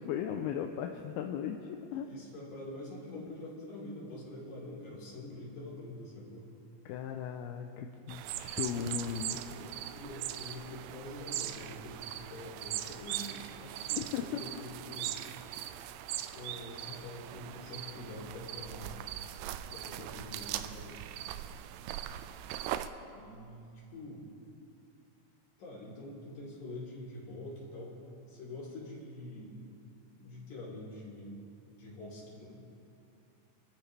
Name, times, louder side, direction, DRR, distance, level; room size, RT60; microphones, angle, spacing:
voice 1, 0.0-2.1 6.9-9.4 14.0-14.4, left 8 dB, 80° left, 4 dB, 2.5 m, -37 dB
voice 2, 1.9-6.5 9.3-15.2 16.3-19.0 19.7-21.0 23.1-24.2 25.6-28.0 28.3-29.6 30.2-32.7, left 1 dB, 50° left, -5 dB, 4.9 m, -45 dB
sound 1, 8.1-22.9, right 12 dB, 85° right, 2.6 m, -40 dB
26.5 x 13.5 x 3.4 m, 2.6 s
omnidirectional pair, 4.8 m